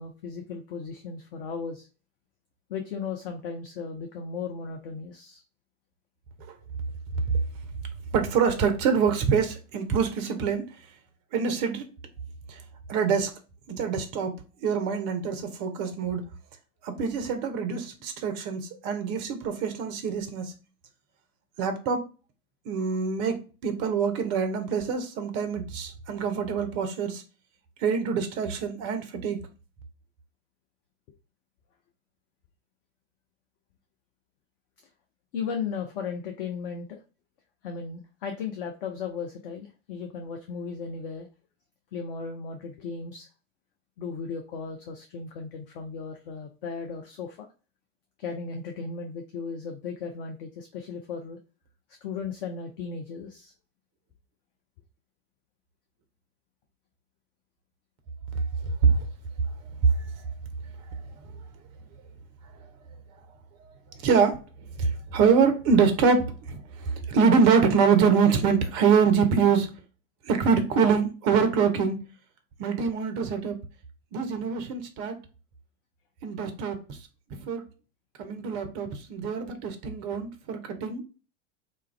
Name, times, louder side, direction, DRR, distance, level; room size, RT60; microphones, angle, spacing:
voice 1, 0.0-1.9 2.7-5.4 35.3-37.0 37.6-41.3 41.9-43.3 44.0-47.5 48.2-51.4 52.0-53.5, left 5 dB, 45° left, 0.4 m, -36 dB
voice 2, 8.1-10.7 11.3-11.9 12.5-12.6 12.9-13.3 13.7-16.2 16.8-20.5 21.6-22.0 22.7-27.2 27.8-29.5 58.8-59.0 63.6-63.7 64.0-64.4 64.8-69.7 70.2-72.0 72.6-73.6 74.1-75.2 76.2-77.0 77.4-77.6 78.2-81.0, right 6 dB, 25° right, 0.4 m, -25 dB
2.2 x 2.0 x 3.1 m
figure-of-eight pair, 85°, 40 cm